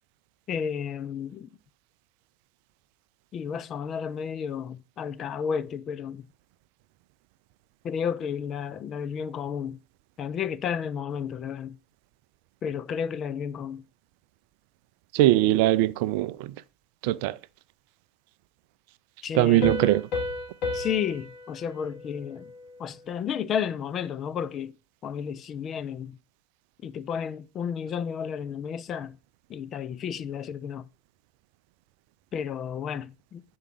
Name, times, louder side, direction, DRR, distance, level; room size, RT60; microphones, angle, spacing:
voice 1, 0.5-1.5 3.3-6.3 7.8-9.8 10.2-11.8 12.6-13.8 19.2-19.8 20.7-22.5 22.8-24.7 25.0-26.2 26.8-29.2 29.5-30.9 32.3-33.4, left 7 dB, 35° left, 0.5 m, -32 dB
voice 2, 15.1-16.5 17.0-17.4 19.3-20.1, right 15 dB, 60° right, 0.4 m, -21 dB
Piano, 19.6-23.0, left 3 dB, 55° left, 2.6 m, -34 dB
6.2 x 4.9 x 5.9 m
hypercardioid pair, 80°, 0 cm